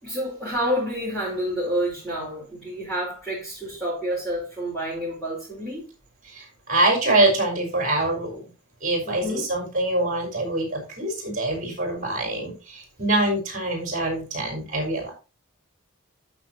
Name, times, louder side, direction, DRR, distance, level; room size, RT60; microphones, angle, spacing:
voice 1, 0.0-5.8 9.0-9.4, equal, 5° left, -8 dB, 5.0 m, -29 dB
voice 2, 6.3-8.5 8.8-15.1, right 2 dB, 40° right, 1 dB, 4.9 m, -24 dB
14.5 x 6.5 x 3.0 m, 0.31 s
head